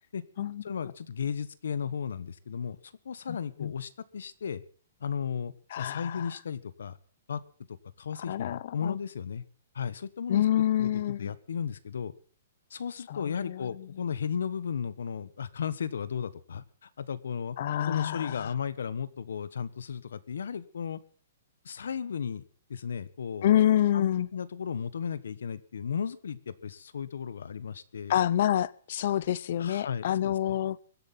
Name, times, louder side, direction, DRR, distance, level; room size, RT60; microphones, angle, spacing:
voice 1, 0.6-4.6 5.0-7.0 7.3-7.4 8.0-9.4 9.7-12.1 12.7-21.0 21.6-22.4 22.7-23.6 23.9-28.1 29.6-30.6, left 7 dB, 85° left, 1.2 m, -35 dB
voice 2, 5.7-6.3 8.3-9.0 10.3-11.3 13.1-13.9 17.6-18.5 23.4-24.3 28.1-30.8, left 11 dB, 50° left, 0.7 m, -27 dB
23.5 x 8.2 x 5.8 m
hypercardioid pair, 165°, 0 cm